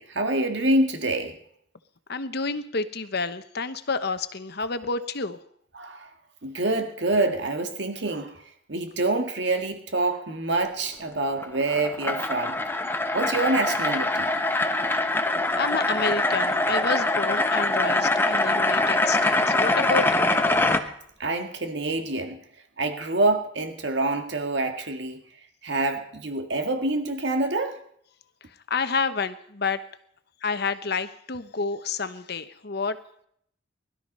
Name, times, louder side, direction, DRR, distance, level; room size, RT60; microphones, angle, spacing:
voice 1, 0.0-1.4 5.7-6.1 6.4-8.4 8.7-12.6 13.1-14.3 21.2-22.4 22.8-25.2 25.6-27.8, right 2 dB, 60° right, 6 dB, 1.9 m, -26 dB
voice 2, 2.1-5.4 15.6-20.3 28.7-29.8 30.4-33.0, left 4 dB, 55° left, 11 dB, 1.0 m, -29 dB
sound 1, 11.3-20.8, left 2 dB, 10° left, 1.0 m, -24 dB
20.5 x 12.5 x 5.5 m, 0.68 s
head